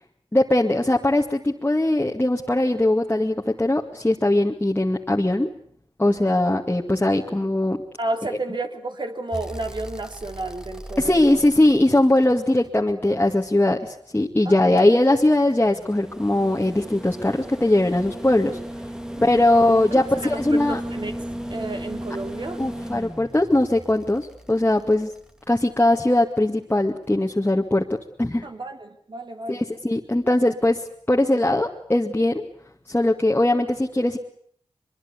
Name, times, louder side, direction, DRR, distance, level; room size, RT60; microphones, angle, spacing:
voice 1, 0.3-5.5 6.0-7.8 11.0-18.6 19.2-20.8 22.6-25.1 25.5-27.8 28.2-28.5 29.5-30.8 31.1-32.4 32.9-34.2, left 1 dB, 20° left, 0 dB, 2.1 m, -20 dB
voice 2, 8.0-11.4 14.4-14.8 19.1-19.5 19.9-21.2 21.5-22.6 28.4-29.6 30.3-30.4, right 2 dB, 45° right, 6 dB, 3.2 m, -32 dB
sound 1, 9.3-13.5 14.8-26.0 27.5-27.6, equal, 5° right, 1.9 m, -36 dB
23.0 x 22.5 x 8.4 m, 0.63 s
cardioid pair, 45°, 11 cm